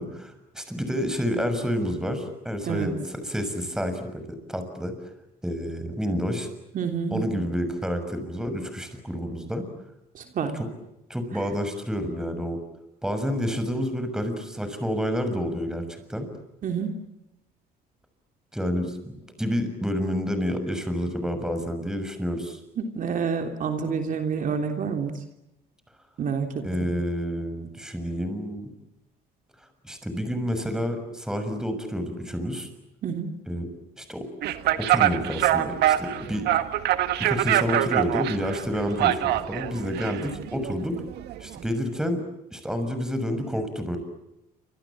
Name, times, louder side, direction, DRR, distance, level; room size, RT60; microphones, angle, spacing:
voice 1, 0.0-4.9 5.4-6.5 7.1-9.7 10.5-10.7 11.1-12.6 13.0-16.3 18.5-22.6 26.6-28.7 29.8-32.7 33.5-33.7 34.0-34.3 34.9-36.6 37.2-41.0 41.4-42.2 42.5-44.0, equal, 5° right, 8 dB, 6.6 m, -29 dB
voice 2, 6.7-7.4 10.2-10.6 16.6-17.0 22.8-25.1 26.2-26.6 33.0-33.4, right 6 dB, 50° right, 5 dB, 3.3 m, -28 dB
sound 1, 34.4-41.7, right 12 dB, 75° right, 1.8 m, -25 dB
28.5 x 26.5 x 7.5 m, 0.90 s
cardioid pair, 110°, 17 cm